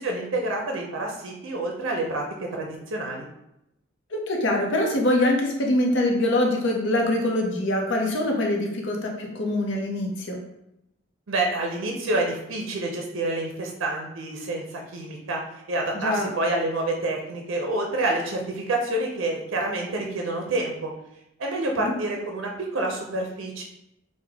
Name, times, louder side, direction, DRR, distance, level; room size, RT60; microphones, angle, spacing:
voice 1, 0.0-3.2 11.3-15.4 15.7-20.9 21.4-23.6, right 2 dB, 80° right, 1 dB, 0.5 m, -28 dB
voice 2, 4.1-10.4 15.9-16.3 21.8-21.9, left 1 dB, 65° left, 1 dB, 0.6 m, -24 dB
3.3 x 2.1 x 3.4 m, 0.84 s
head